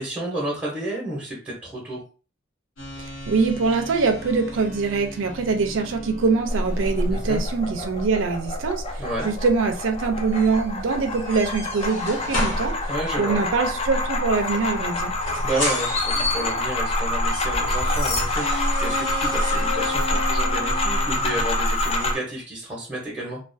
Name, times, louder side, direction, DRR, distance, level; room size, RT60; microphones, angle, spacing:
voice 1, 0.0-2.0 7.1-7.4 9.0-9.3 12.9-13.4 15.4-23.4, right 1 dB, 5° right, -5 dB, 0.7 m, -31 dB
sound 1, 2.8-21.5, left 2 dB, 75° left, 1.0 m, -33 dB
voice 2, 3.0-8.8 9.2-12.7 13.2-15.1, right 4 dB, 70° right, 5 dB, 0.4 m, -23 dB
sound 2, 6.5-22.2, left 1 dB, 30° left, 0.4 m, -26 dB
sound 3, 17.5-19.5 19.8-20.1 21.7-21.9, left 2 dB, 55° left, 1.0 m, -36 dB
2.4 x 2.2 x 2.5 m, 0.36 s
head